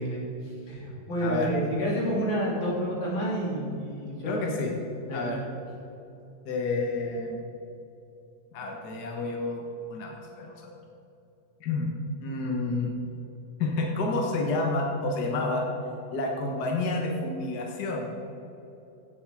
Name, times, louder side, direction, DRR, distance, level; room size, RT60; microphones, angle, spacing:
voice 1, 0.0-4.5 5.0-5.3, equal, 90° left, -6 dB, 4.1 m, -30 dB
voice 2, 1.2-1.5 4.2-4.7 5.1-5.4 6.4-7.4 8.5-9.6 9.9-10.7 11.6-11.9 12.2-12.9 13.6-15.7 16.1-18.1, left 2 dB, 60° left, 0 dB, 1.7 m, -29 dB
16.0 x 7.2 x 4.8 m, 2.9 s
omnidirectional pair, 2.0 m